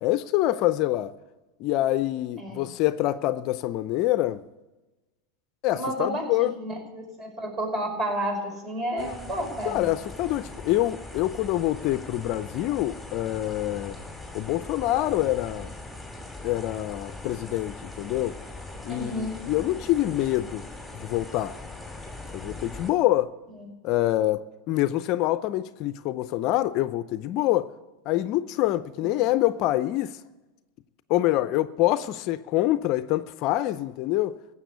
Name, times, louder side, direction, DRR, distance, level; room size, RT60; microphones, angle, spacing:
voice 1, 0.0-1.1 1.6-4.4 5.6-6.5 8.9-9.1 9.6-14.0 14.3-15.7 16.4-18.4 18.8-20.6 20.9-21.5 22.3-23.3 23.8-27.7 28.1-30.2 31.1-34.4, left 15 dB, 50° left, 0.5 m, -26 dB
voice 2, 2.4-2.7 5.7-9.8 18.9-19.4 29.0-29.1, right 1 dB, 30° right, 5.3 m, -31 dB
sound 1, 9.0-22.9, left 2 dB, ahead, 3.0 m, -41 dB
16.0 x 7.4 x 8.2 m
hypercardioid pair, 100°, 0 cm